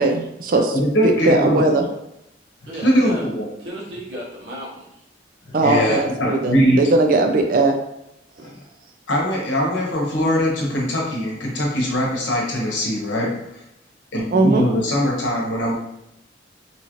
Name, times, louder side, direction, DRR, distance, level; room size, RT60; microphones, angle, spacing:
voice 1, 0.0-0.7 1.0-1.8 5.5-7.8 8.4-8.5 14.3-14.6, right 2 dB, 50° right, 4 dB, 0.4 m, -19 dB
voice 2, 0.7-1.9 2.8-3.5 5.5-6.8 8.4-8.5 9.1-13.4 14.1-15.7, equal, 85° left, -3 dB, 0.9 m, -21 dB
voice 3, 2.7-3.3 3.6-5.0 14.5-14.6, equal, 65° right, -5 dB, 1.1 m, -34 dB
2.9 x 2.5 x 2.9 m, 0.83 s
head